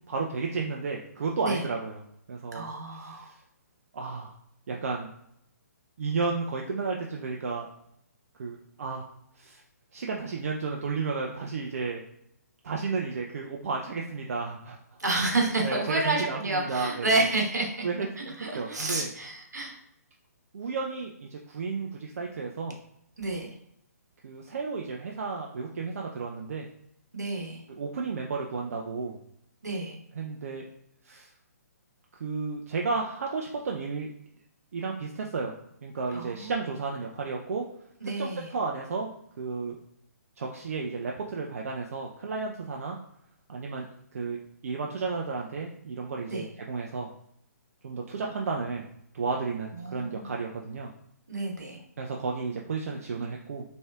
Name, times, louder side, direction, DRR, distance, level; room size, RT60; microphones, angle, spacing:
voice 1, 0.1-2.0 2.3-2.6 3.0-3.4 3.9-4.4 4.7-5.1 6.0-7.7 8.4-9.1 9.4-9.6 9.9-12.0 12.6-14.8 15.3-17.2 17.8-19.1 20.5-22.8 24.2-26.7 27.8-29.2 30.1-30.6 31.0-31.3 32.2-34.1 34.7-35.5 35.8-37.6 38.0-39.1 39.4-39.8 40.4-43.0 43.5-43.9 44.1-44.4 44.6-47.1 47.8-48.9 49.1-50.9 52.0-53.6, right 4 dB, 60° right, 0 dB, 0.5 m, -32 dB
voice 2, 2.5-3.3 15.0-17.9 18.2-19.8 23.2-23.5 27.1-27.6 29.6-30.0 36.1-36.6 38.0-38.5 46.3-46.5 49.7-50.3 51.3-51.8, right 2 dB, 80° right, 0 dB, 1.2 m, -30 dB
4.3 x 3.3 x 2.3 m, 0.74 s
figure-of-eight pair, 135°, 9 cm